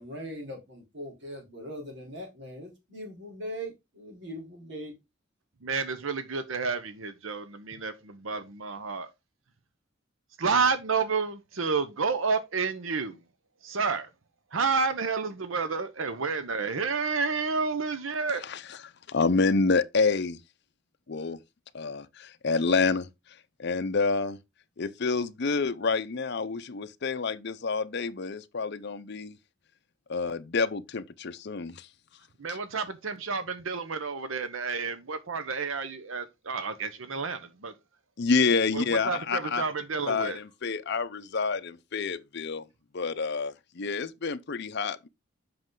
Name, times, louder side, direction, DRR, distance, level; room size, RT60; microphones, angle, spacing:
voice 1, 0.0-4.9, equal, 60° right, 4.0 m, -40 dB
voice 2, 5.6-9.1 10.4-13.2 13.6-14.1 14.5-18.4 32.4-37.7 38.7-40.4, right 4 dB, 75° right, 0.9 m, -30 dB
voice 3, 19.1-20.4 21.1-21.4 21.7-23.1 23.6-24.4 24.8-29.4 30.1-31.9 32.5-32.6 38.2-39.6 40.1-42.6 42.9-45.1, left 4 dB, 55° left, 0.6 m, -28 dB
7.8 x 6.0 x 3.8 m
head